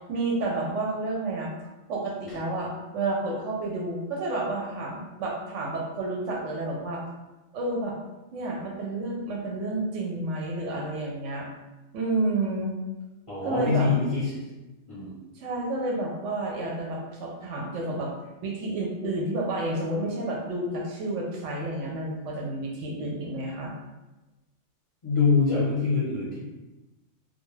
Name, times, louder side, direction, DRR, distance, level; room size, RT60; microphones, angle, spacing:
voice 1, 0.1-1.5 1.9-7.0 7.5-7.9 8.3-11.5 11.9-12.8 13.4-13.9 15.4-18.1 18.4-23.7, right 2 dB, 70° right, -1 dB, 0.8 m, -30 dB
voice 2, 13.3-14.4 14.9-15.1 25.0-26.4, left 4 dB, 35° left, -9 dB, 0.6 m, -24 dB
2.3 x 2.2 x 3.1 m, 1.1 s
omnidirectional pair, 1.4 m